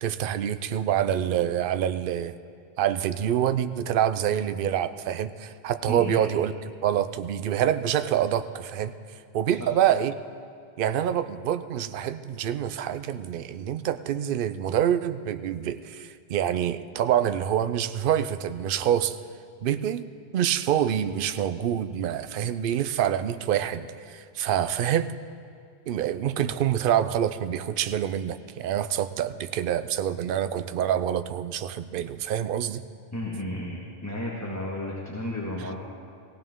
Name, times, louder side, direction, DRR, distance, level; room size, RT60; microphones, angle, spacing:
voice 1, 0.0-2.4 2.8-6.5 6.8-9.0 9.3-10.2 10.8-19.2 19.6-20.0 20.3-25.1 25.9-32.8, right 10 dB, 60° right, 11 dB, 0.7 m, -26 dB
voice 2, 5.9-6.2 33.1-35.8, left 1 dB, 15° left, -4 dB, 1.6 m, -33 dB
18.5 x 16.0 x 3.7 m, 2.3 s
omnidirectional pair, 1.2 m